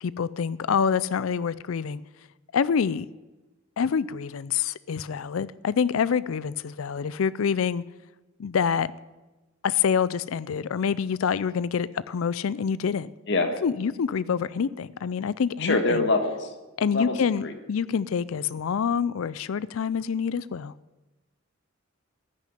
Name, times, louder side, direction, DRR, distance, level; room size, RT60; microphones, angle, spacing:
voice 1, 0.0-2.0 2.5-3.1 3.8-7.8 8.4-8.9 9.6-13.1 13.6-16.1 16.8-20.7, left 6 dB, 80° left, 0.4 m, -26 dB
voice 2, 15.6-16.5 16.9-17.2 17.4-17.5, left 2 dB, 60° left, 1.6 m, -24 dB
14.5 x 6.5 x 10.0 m
head